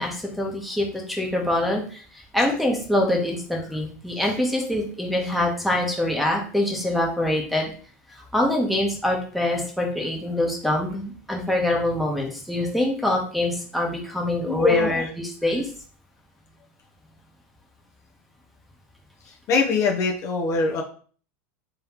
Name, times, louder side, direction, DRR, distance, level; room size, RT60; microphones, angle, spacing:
voice 1, 0.0-7.7 8.1-15.7, left 1 dB, ahead, 0 dB, 1.2 m, -25 dB
voice 2, 14.4-15.0 19.5-20.8, left 4 dB, 40° left, 0 dB, 0.9 m, -22 dB
3.6 x 3.4 x 2.9 m, 0.43 s
supercardioid pair, 115°, 8 cm